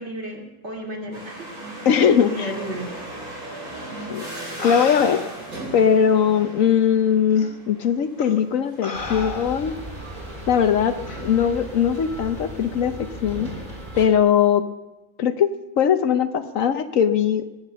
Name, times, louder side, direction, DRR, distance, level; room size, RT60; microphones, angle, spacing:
voice 1, 0.0-1.5 2.0-2.9 3.4-3.5, equal, 45° right, 1 dB, 2.6 m, -33 dB
sound 1, 1.1-12.6, right 1 dB, 70° right, 4.4 m, -39 dB
voice 2, 1.8-2.5 4.1-4.2 4.6-5.2 5.7-9.7 10.5-11.0 11.2-13.5 13.9-14.7 15.2-17.4, left 8 dB, 65° left, 10 dB, 1.1 m, -20 dB
sound 2, 3.9-4.1 4.6-5.5 6.4-6.5 7.3-7.5 8.2-8.4 8.8-9.8 11.1-11.3, left 3 dB, 35° left, 1.4 m, -33 dB
sound 3, 8.9-14.1, right 1 dB, 30° right, 4.0 m, -36 dB
20.5 x 8.6 x 6.9 m, 1.1 s
omnidirectional pair, 1.6 m